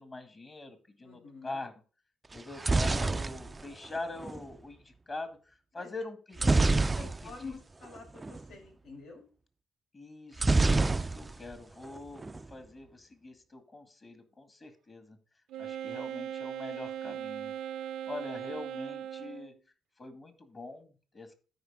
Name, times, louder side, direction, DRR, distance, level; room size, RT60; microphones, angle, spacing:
voice 1, 0.0-1.8 2.3-7.6 9.9-15.2 15.6-17.5 18.1-19.5 20.0-21.3, left 2 dB, 35° left, 9 dB, 2.0 m, -44 dB
voice 2, 1.0-1.5 5.8-5.9 6.5-9.2, left 4 dB, 80° left, -1 dB, 4.8 m, -47 dB
sound 1, 2.3-4.4 6.4-7.5 7.8-8.4 10.4-11.5 11.8-12.4, right 3 dB, 20° right, 0.3 m, -27 dB
Wind instrument woodwind instrument, 15.5-19.6, right 10 dB, 80° right, 0.5 m, -39 dB
13.0 x 5.2 x 3.6 m, 0.36 s
cardioid pair, 90°, 0 cm